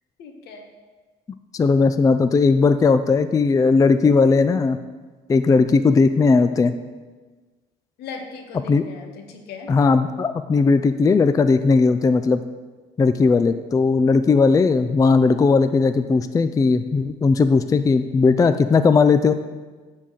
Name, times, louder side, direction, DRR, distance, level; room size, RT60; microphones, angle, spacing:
voice 1, 0.2-0.7 8.0-9.7, left 5 dB, 75° left, 4 dB, 1.3 m, -38 dB
voice 2, 1.5-4.8 5.3-6.7 8.7-8.9 9.7-12.4 13.0-19.3, left 4 dB, 20° left, 10 dB, 0.4 m, -17 dB
10.0 x 4.0 x 7.6 m, 1.3 s
cardioid pair, 110°, 17 cm